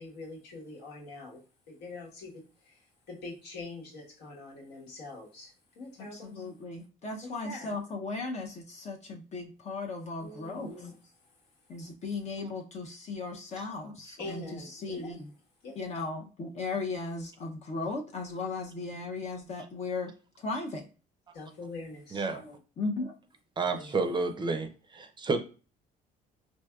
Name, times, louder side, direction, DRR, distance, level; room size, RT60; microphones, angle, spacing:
voice 1, 0.0-1.4 1.7-6.5 7.2-7.8 10.2-11.0 14.2-15.2 15.6-15.8 21.3-22.3 23.7-24.0, left 2 dB, 80° left, -3 dB, 1.4 m, -44 dB
voice 2, 6.1-10.7 11.7-15.3 15.8-20.8 22.3-23.1, left 3 dB, 40° left, 1 dB, 0.6 m, -36 dB
voice 3, 22.1-22.4 23.6-25.4, right 3 dB, 25° right, 7 dB, 0.5 m, -30 dB
4.5 x 2.6 x 2.3 m, 0.36 s
cardioid pair, 110°, 17 cm